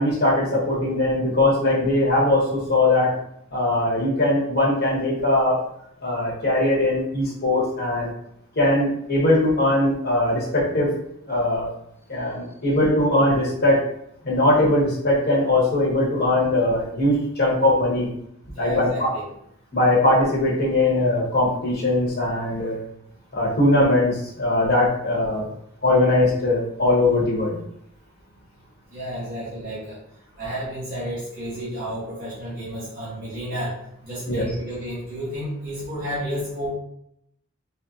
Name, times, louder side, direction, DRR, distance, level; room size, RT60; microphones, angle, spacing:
voice 1, 0.0-3.1 3.5-5.6 6.0-8.1 8.6-10.9 11.3-11.7 12.1-13.8 14.2-18.1 18.6-19.1 19.7-22.8 23.3-25.5 25.8-27.6 34.3-34.5, left 1 dB, 50° left, -4 dB, 1.0 m, -20 dB
voice 2, 18.5-19.3 22.6-22.7 28.9-30.0 30.4-33.8 34.0-36.7, equal, 45° right, -8 dB, 1.0 m, -31 dB
4.0 x 2.0 x 2.4 m, 0.74 s
head